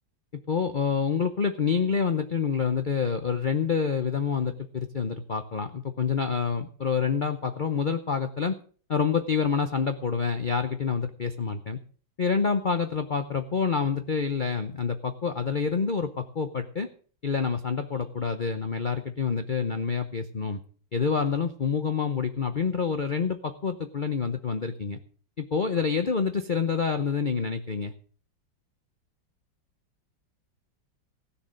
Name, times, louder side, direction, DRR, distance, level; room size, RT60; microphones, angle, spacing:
voice 1, 0.5-8.6 8.9-11.8 12.2-16.9 17.2-20.6 20.9-25.0 25.4-27.9, left 5 dB, 85° left, 8 dB, 0.4 m, -27 dB
16.0 x 7.1 x 6.4 m, 0.43 s
omnidirectional pair, 2.1 m